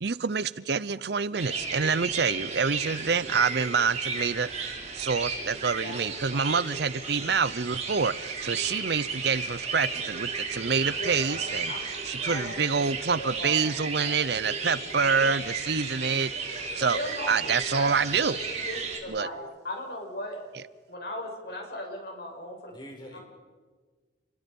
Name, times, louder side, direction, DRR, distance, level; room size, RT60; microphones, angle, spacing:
voice 1, 0.0-17.0 17.3-18.4 19.1-19.3, right 5 dB, 65° right, 0.6 m, -27 dB
sound 1, 1.4-19.0, right 5 dB, 35° right, 4.4 m, -34 dB
voice 2, 5.8-6.8 10.9-11.9 12.2-12.8 13.1-13.5 14.0-14.2 15.0-15.4 16.8-20.4 20.9-22.7 23.1-23.2, left 1 dB, 60° left, 6.7 m, -38 dB
voice 3, 22.7-23.2, equal, 25° left, 6.8 m, -47 dB
29.0 x 22.0 x 5.4 m
head